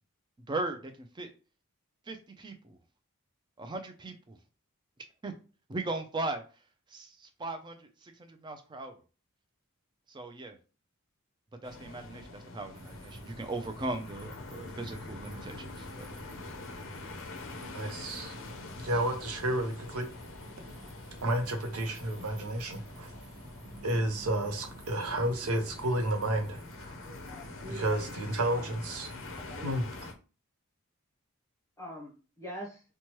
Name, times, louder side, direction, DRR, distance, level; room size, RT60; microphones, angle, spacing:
voice 1, 0.5-1.3 2.1-2.8 3.6-4.4 5.2-5.3 5.7-6.4 6.9-8.9 10.1-10.6 11.6-16.1, right 2 dB, 20° right, 0.4 m, -38 dB
sound 1, 11.6-30.1, left 3 dB, 60° left, 0.5 m, -46 dB
sound 2, 12.7-30.1, equal, 50° right, 0.8 m, -48 dB
voice 2, 17.7-18.3 18.8-20.1 21.2-23.1 23.8-26.9 27.8-29.1 29.6-29.8, right 1 dB, 90° right, 0.7 m, -31 dB
voice 3, 27.0-28.0 28.6-28.7 29.0-29.7 31.8-32.8, equal, 15° left, 0.8 m, -45 dB
3.0 x 2.2 x 2.9 m
head